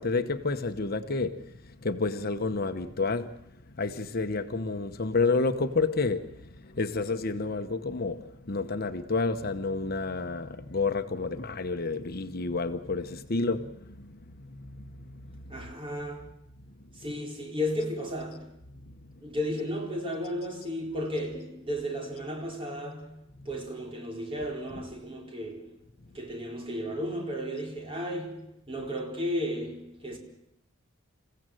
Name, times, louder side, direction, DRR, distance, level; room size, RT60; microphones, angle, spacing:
voice 1, 0.0-1.5 1.8-3.3 3.8-14.8 15.1-15.2 23.5-23.6 24.7-24.8, left 3 dB, 50° left, 1.0 m, -30 dB
voice 2, 15.5-16.3 17.0-18.5 19.2-23.2 23.4-25.7 26.1-30.2, equal, 30° right, 4.2 m, -34 dB
28.0 x 16.0 x 7.7 m
head